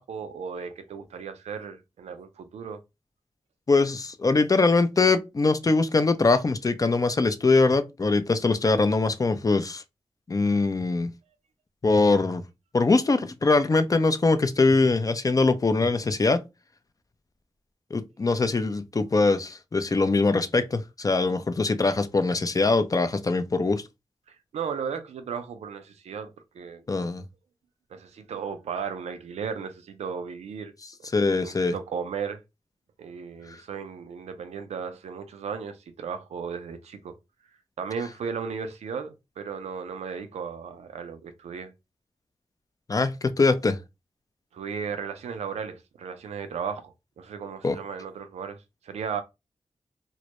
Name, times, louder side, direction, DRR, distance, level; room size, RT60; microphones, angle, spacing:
voice 1, 0.0-2.8 12.1-12.2 24.3-26.8 27.9-30.7 31.0-32.4 33.0-37.1 37.8-41.7 44.5-49.2, right 6 dB, 90° right, 0.4 m, -35 dB
voice 2, 3.7-9.8 10.3-11.1 11.8-12.4 12.7-16.4 17.9-23.8 26.9-27.2 31.1-31.7 42.9-43.8 47.6-47.8, left 3 dB, 35° left, 0.4 m, -22 dB
2.2 x 2.0 x 2.8 m
cardioid pair, 40°, 11 cm